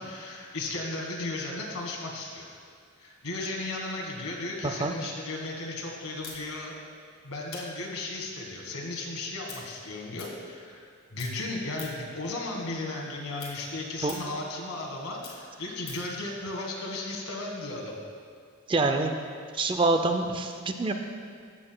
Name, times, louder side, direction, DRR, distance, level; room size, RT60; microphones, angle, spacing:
voice 1, 0.0-2.5 3.0-6.7 7.2-10.8 11.1-17.9, left 2 dB, 85° left, -1 dB, 1.6 m, -35 dB
voice 2, 4.6-4.9 14.0-14.2 18.7-19.2 19.5-20.9, right 3 dB, 25° right, 5 dB, 0.4 m, -26 dB
sound 1, 6.2-10.9 11.1-12.2 12.5-16.2, left 4 dB, 60° left, 2.0 m, -46 dB
15.0 x 7.5 x 2.2 m, 2.2 s
head